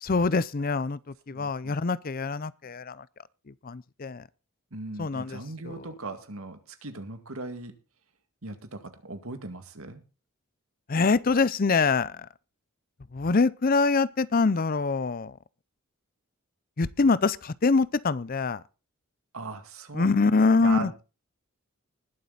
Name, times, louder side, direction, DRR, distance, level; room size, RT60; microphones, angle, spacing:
voice 1, 0.0-3.0 3.5-4.2 5.0-5.4 5.6-5.9 10.9-12.3 13.1-15.4 16.8-18.6 19.9-20.9, left 4 dB, 40° left, 0.5 m, -24 dB
voice 2, 1.3-1.8 4.7-7.8 8.4-10.0 19.3-21.0, right 2 dB, 80° right, 2.1 m, -39 dB
20.0 x 7.7 x 4.0 m
head